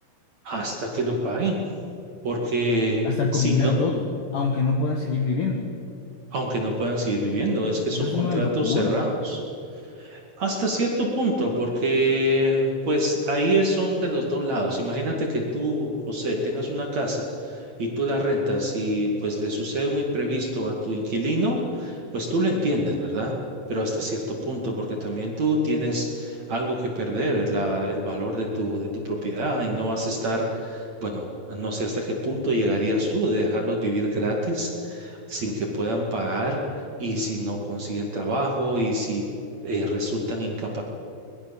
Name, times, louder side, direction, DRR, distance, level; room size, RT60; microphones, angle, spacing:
voice 1, 0.4-1.6 2.2-3.8 6.3-9.4 10.0-23.3 23.7-36.6 37.0-39.2 39.6-40.8, right 1 dB, 45° right, 0 dB, 2.8 m, -26 dB
voice 2, 3.0-4.1 4.3-5.7 7.9-9.0, left 4 dB, 65° left, 3 dB, 2.2 m, -24 dB
24.0 x 21.0 x 7.2 m, 2.6 s
omnidirectional pair, 5.8 m